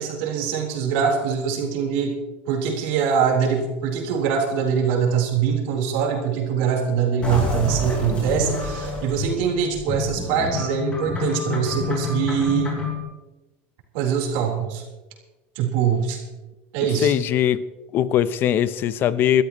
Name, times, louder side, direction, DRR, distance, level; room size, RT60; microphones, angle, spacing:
voice 1, 0.0-2.1 2.5-12.8 13.9-14.8 15.6-16.2 16.7-17.1, right 7 dB, 65° right, 3.9 m, -23 dB
sound 1, 7.2-13.0, left 3 dB, 20° left, 5.4 m, -28 dB
voice 2, 17.0-17.6 17.9-19.4, left 10 dB, 35° left, 0.6 m, -20 dB
23.0 x 13.5 x 3.0 m
supercardioid pair, 155°, 6 cm